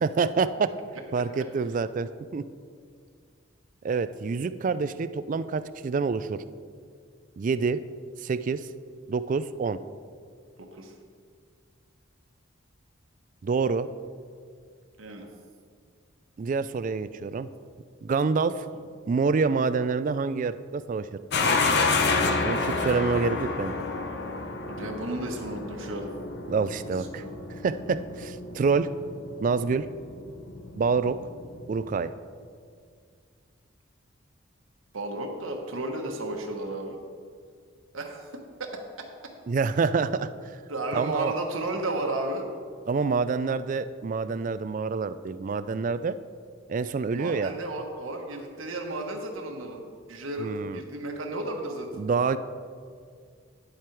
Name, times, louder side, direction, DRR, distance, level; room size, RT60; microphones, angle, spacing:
voice 1, 0.0-0.7 1.1-2.4 3.8-6.4 7.4-7.8 8.2-8.7 9.1-9.8 13.4-13.9 16.4-17.5 18.0-18.7 19.1-21.1 22.4-23.7 26.5-27.2 27.6-28.9 29.4-29.9 30.8-31.2 31.7-32.1 39.5-40.3 40.9-41.3 42.9-46.2 46.7-47.5 50.4-50.8 52.0-52.4, right 5 dB, 40° right, 14 dB, 0.3 m, -27 dB
voice 2, 10.6-10.9 15.0-15.3 24.7-26.1 26.9-27.3 34.9-37.0 37.9-38.3 38.6-38.7 40.7-42.5 47.1-51.9, right 2 dB, 80° right, 2 dB, 1.1 m, -33 dB
sound 1, 21.3-32.1, left 3 dB, 55° left, 0.7 m, -30 dB
10.0 x 7.5 x 4.6 m, 2.1 s
head